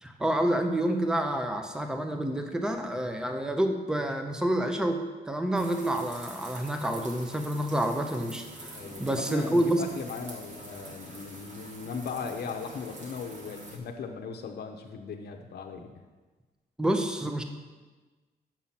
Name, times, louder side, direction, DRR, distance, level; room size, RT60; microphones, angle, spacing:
voice 1, 0.0-9.8 16.8-17.4, right 1 dB, 5° right, 5 dB, 0.7 m, -28 dB
sound 1, 5.5-13.8, right 1 dB, 50° right, 1.6 m, -46 dB
voice 2, 8.7-15.9, left 5 dB, 75° left, 3 dB, 0.7 m, -38 dB
7.5 x 5.7 x 5.7 m, 1.3 s
cardioid pair, 110°, 17 cm